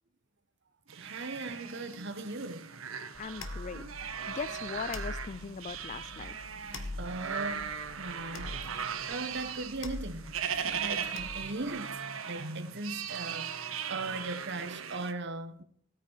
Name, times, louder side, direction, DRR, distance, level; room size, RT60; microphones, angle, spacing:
voice 1, 0.9-2.7 7.0-12.0 12.3-15.6, right 2 dB, 60° right, 1.4 m, -39 dB
sound 1, 0.9-15.1, right 7 dB, 90° right, 1.3 m, -38 dB
sound 2, 3.1-11.7, left 2 dB, 70° left, 1.5 m, -45 dB
voice 2, 3.2-6.4, left 5 dB, 35° left, 0.4 m, -40 dB
17.0 x 9.2 x 4.8 m
head